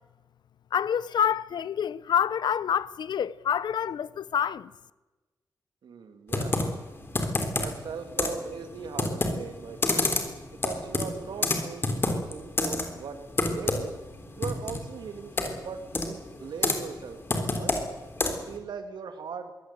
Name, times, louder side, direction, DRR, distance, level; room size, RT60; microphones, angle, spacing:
voice 1, 0.7-4.7, left 8 dB, 75° left, 0.8 m, -27 dB
voice 2, 5.8-6.6 7.6-10.1 10.6-13.3 13.5-14.0 14.4-17.8 18.2-19.5, right 6 dB, 85° right, 2.1 m, -39 dB
Computer keyboard, 6.3-18.6, left 2 dB, 30° left, 3.4 m, -30 dB
23.0 x 17.5 x 8.1 m
wide cardioid pair, 140°, 7 cm